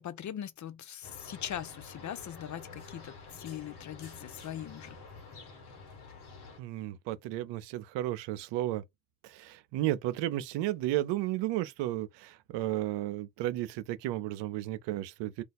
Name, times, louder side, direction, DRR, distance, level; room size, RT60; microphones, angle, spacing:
voice 1, 0.0-5.0, left 10 dB, 45° left, 0.5 m, -41 dB
sound 1, 1.0-6.6, left 4 dB, 65° left, 1.2 m, -49 dB
voice 2, 6.6-8.8 9.2-15.4, right 14 dB, 75° right, 0.5 m, -33 dB
2.4 x 2.3 x 4.0 m
hypercardioid pair, 45°, 43 cm